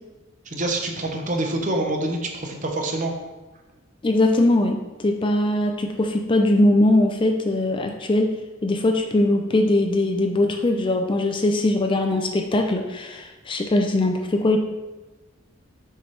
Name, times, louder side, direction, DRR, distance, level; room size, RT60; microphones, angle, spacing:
voice 1, 0.4-3.1, right 2 dB, 35° right, 3 dB, 0.9 m, -26 dB
voice 2, 4.0-8.4 8.6-14.6, left 1 dB, 25° left, 4 dB, 0.4 m, -21 dB
6.9 x 5.6 x 3.3 m, 1.2 s
head